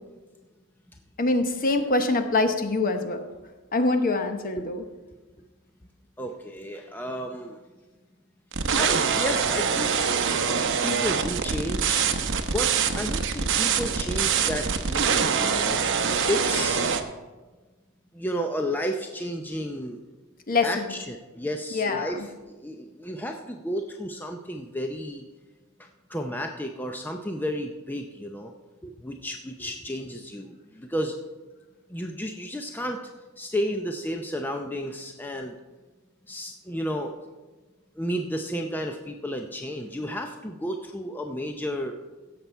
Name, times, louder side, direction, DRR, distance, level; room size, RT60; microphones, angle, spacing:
voice 1, 1.2-3.3 3.7-4.8 20.5-20.9 21.7-22.3, left 2 dB, 40° left, 7 dB, 1.0 m, -24 dB
voice 2, 6.2-7.6 8.7-10.2 10.8-12.1 12.5-15.8 16.3-16.8 18.1-20.0 20.6-22.3 22.6-25.3 26.1-28.5 28.8-31.1 31.9-33.0 33.4-35.5 36.3-37.2 38.0-42.0, equal, 10° left, 3 dB, 0.5 m, -32 dB
sound 1, 8.5-17.0, right 6 dB, 55° right, 0.8 m, -24 dB
16.5 x 7.0 x 4.5 m, 1.2 s
head